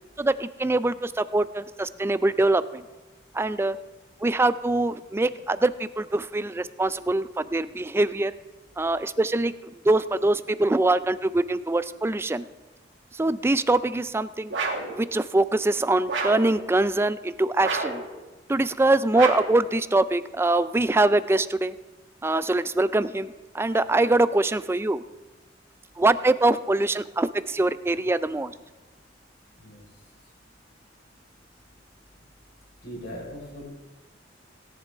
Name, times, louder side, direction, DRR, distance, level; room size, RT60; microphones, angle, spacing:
voice 1, 0.2-2.8 3.3-3.8 4.2-8.3 8.8-9.5 9.8-12.5 13.2-14.5 14.9-18.0 18.5-21.7 22.2-25.0 26.0-28.5, right 2 dB, 15° right, 14 dB, 0.3 m, -23 dB
sound 1, 14.5-15.0 16.1-16.5 17.6-18.1 19.1-19.6, right 3 dB, 80° right, 2.2 m, -29 dB
voice 2, 32.8-33.7, equal, 60° left, -1 dB, 4.3 m, -39 dB
17.5 x 10.5 x 3.5 m, 1.2 s
head